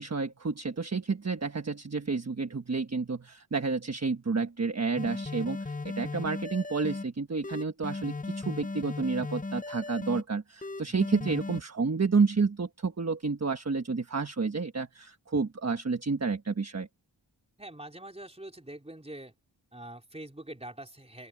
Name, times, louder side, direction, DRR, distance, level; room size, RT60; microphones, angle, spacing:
voice 1, 0.0-16.9, right 4 dB, 35° right, 1.3 m, -30 dB
sound 1, 5.0-7.0 7.4-10.2 10.6-11.6, left 3 dB, 20° left, 0.6 m, -36 dB
voice 2, 17.6-19.3 19.7-21.3, right 1 dB, 15° right, 4.0 m, -44 dB
open air
wide cardioid pair, 90°, 45 cm